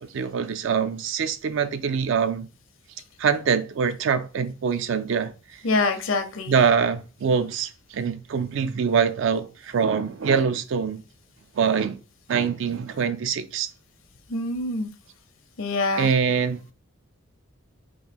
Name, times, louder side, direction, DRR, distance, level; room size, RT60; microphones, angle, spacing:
voice 1, 0.0-2.5 3.2-5.6 6.5-11.0 11.6-12.0 12.3-13.7 16.0-16.7, right 6 dB, 60° right, 0.3 m, -24 dB
voice 2, 5.6-6.6 14.3-14.9 15.6-16.1, left 3 dB, 65° left, 0.7 m, -25 dB
3.7 x 2.6 x 3.4 m
head